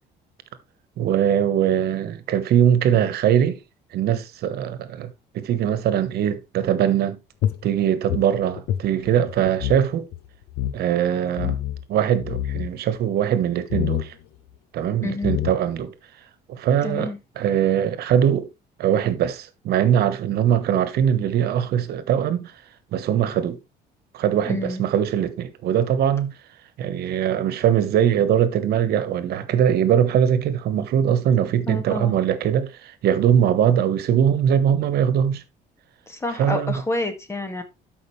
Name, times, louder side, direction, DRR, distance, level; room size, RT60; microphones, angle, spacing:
voice 1, 1.0-3.6 3.9-7.2 7.6-10.1 10.7-11.6 11.9-14.1 14.7-15.9 16.5-18.5 18.8-22.5 22.9-23.6 24.1-26.3 26.8-35.4 36.4-36.7, right 9 dB, 70° right, 1.3 m, -21 dB
sound 1, 7.4-9.8 10.1-10.2 10.5-10.8 11.4-11.8 12.2-12.7 13.7-14.1 14.9-15.0 15.2-15.8, left 12 dB, 80° left, 0.7 m, -26 dB
voice 2, 15.0-15.4 16.8-17.2 24.4-24.8 31.7-32.2 36.1-37.6, left 2 dB, 15° left, 2.0 m, -28 dB
12.5 x 5.4 x 3.3 m
cardioid pair, 110°, 17 cm